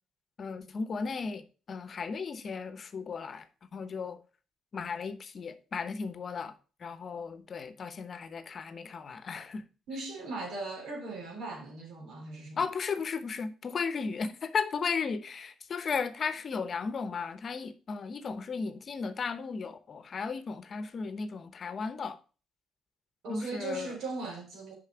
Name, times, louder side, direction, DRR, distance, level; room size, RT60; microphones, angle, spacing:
voice 1, 0.4-3.5 3.7-4.2 4.7-6.5 6.8-9.6 12.6-22.2 23.3-23.9, left 5 dB, 50° left, 0.9 m, -35 dB
voice 2, 9.9-12.6 23.2-24.7, right 3 dB, 75° right, 3.2 m, -38 dB
6.6 x 5.3 x 4.9 m
supercardioid pair, 65°, 0 cm